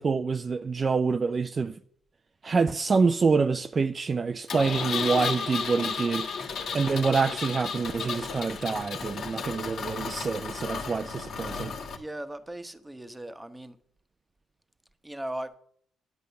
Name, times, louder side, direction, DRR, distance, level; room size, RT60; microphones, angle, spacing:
voice 1, 0.0-1.7 2.4-6.3 6.7-11.7, right 4 dB, 35° right, 0.5 m, -26 dB
Engine, 4.5-12.0, left 5 dB, 60° left, 1.6 m, -33 dB
voice 2, 11.9-13.8 15.0-15.5, right 1 dB, 10° right, 1.1 m, -38 dB
10.5 x 8.3 x 6.9 m
cardioid pair, 90°, 0 cm